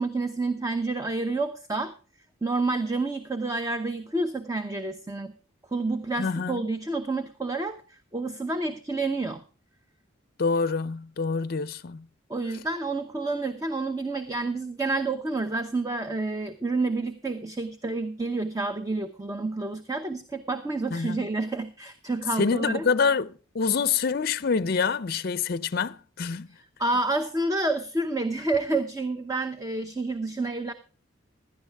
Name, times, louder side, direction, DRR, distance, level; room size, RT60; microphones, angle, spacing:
voice 1, 0.0-1.9 2.4-5.3 5.7-9.4 12.3-22.9 26.8-30.7, right 2 dB, 15° right, 0.8 m, -29 dB
voice 2, 6.2-6.6 10.4-12.1 20.9-21.2 22.4-26.5, left 5 dB, 50° left, 0.5 m, -26 dB
16.5 x 11.5 x 3.4 m
head